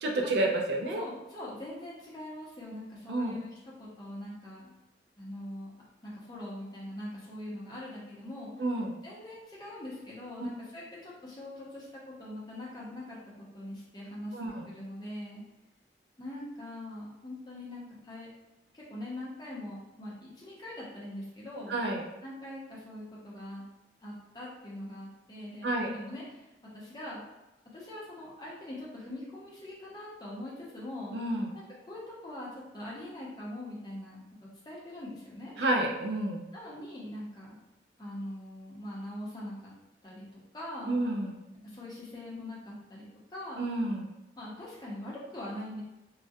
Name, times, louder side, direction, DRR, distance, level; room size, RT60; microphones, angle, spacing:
voice 1, 0.0-1.0 3.1-3.3 8.6-8.9 14.3-14.6 21.7-22.0 25.6-25.9 31.1-31.5 35.6-36.4 40.9-41.4 43.6-44.1, right 1 dB, 70° right, 1 dB, 0.4 m, -29 dB
voice 2, 0.9-4.7 5.2-5.7 6.0-8.7 9.0-14.4 14.7-15.4 16.2-18.3 18.7-21.8 22.2-23.6 24.0-26.5 26.7-27.2 27.7-31.2 31.5-34.2 34.6-35.5 36.5-37.6 38.0-39.7 40.0-41.1 41.6-43.0 43.3-43.7 44.4-45.8, left 1 dB, 25° left, -6 dB, 0.6 m, -42 dB
2.3 x 2.1 x 2.6 m, 0.96 s
head